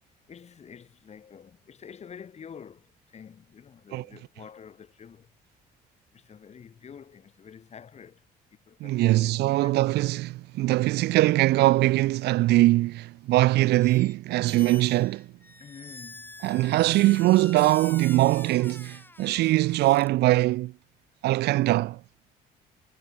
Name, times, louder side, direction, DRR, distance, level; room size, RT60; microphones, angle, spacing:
voice 1, 0.3-5.3 6.1-8.2 8.7-9.3 9.6-9.9 15.6-16.5, left 7 dB, 40° left, 5.0 m, -47 dB
voice 2, 8.8-15.3 16.4-20.7 21.2-22.0, right 17 dB, 75° right, 0.9 m, -22 dB
Squeak, 13.8-14.1 14.4-20.1, left 2 dB, 10° left, 7.3 m, -46 dB
cardioid pair, 110°, 17 cm